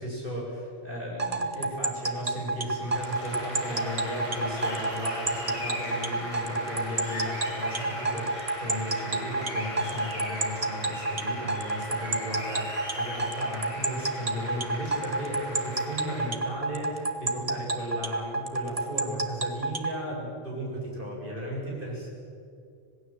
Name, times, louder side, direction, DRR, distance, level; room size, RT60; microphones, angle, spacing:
voice 1, 0.0-22.1, equal, 50° right, -4 dB, 7.9 m, -35 dB
sound 1, 1.2-19.9, right 3 dB, 35° right, 1.4 m, -29 dB
Applause, 2.7-16.3, left 1 dB, 30° left, 7.9 m, -38 dB
26.5 x 17.5 x 7.8 m, 2.4 s
omnidirectional pair, 1.1 m